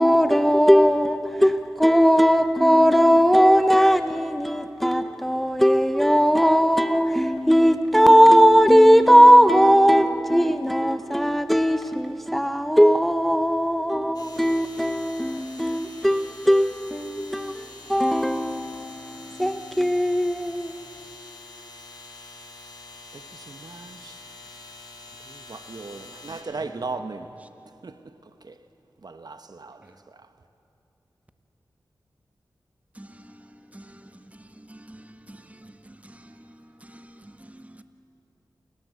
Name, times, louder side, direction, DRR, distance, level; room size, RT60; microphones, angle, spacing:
voice 1, 0.0-20.8, equal, ahead, 0.8 m, -18 dB
sound 1, 14.1-26.4, left 2 dB, 60° left, 4.2 m, -45 dB
voice 2, 23.1-24.2 25.3-27.3 27.8-28.0 28.4-28.6 29.0-29.8, right 3 dB, 55° right, 0.9 m, -37 dB
voice 3, 32.9-37.8, right 1 dB, 20° right, 1.4 m, -48 dB
28.5 x 17.5 x 8.1 m
cardioid pair, 50°, 8 cm